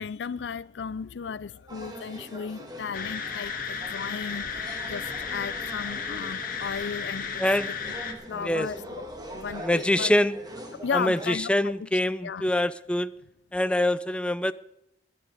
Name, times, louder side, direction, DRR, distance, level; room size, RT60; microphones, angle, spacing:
voice 1, 0.0-7.4 8.3-9.0 9.3-10.1 10.8-11.9 12.2-12.4, left 6 dB, 75° left, 0.5 m, -35 dB
sound 1, 1.7-11.3, right 1 dB, 20° right, 2.1 m, -43 dB
sound 2, 2.9-8.1, left 5 dB, 50° left, 1.8 m, -34 dB
voice 2, 8.4-8.7 9.6-10.4 10.9-13.1 13.5-14.5, left 1 dB, 5° left, 0.4 m, -24 dB
16.5 x 11.5 x 4.0 m
head